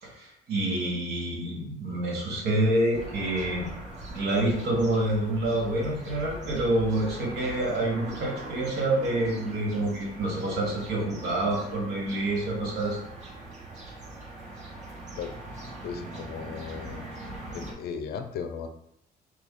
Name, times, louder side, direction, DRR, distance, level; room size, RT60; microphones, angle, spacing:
voice 1, 0.0-3.7 4.1-13.0, right 1 dB, 70° right, -1 dB, 1.2 m, -27 dB
sound 1, 2.9-17.7, right 2 dB, 45° right, 1.0 m, -41 dB
voice 2, 15.8-17.1 17.5-18.7, left 6 dB, 70° left, 7 dB, 0.5 m, -36 dB
3.2 x 2.5 x 3.6 m, 0.79 s
cardioid pair, 110°, 17 cm